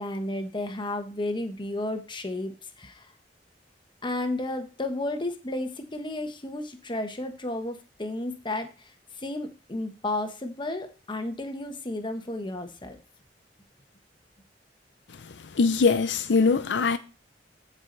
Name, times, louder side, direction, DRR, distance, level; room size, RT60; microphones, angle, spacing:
voice 1, 0.0-3.1 4.0-8.7 9.2-13.0, left 2 dB, 25° left, 1.2 m, -32 dB
voice 2, 15.5-17.0, left 4 dB, 80° left, 0.6 m, -22 dB
14.5 x 4.9 x 4.0 m
head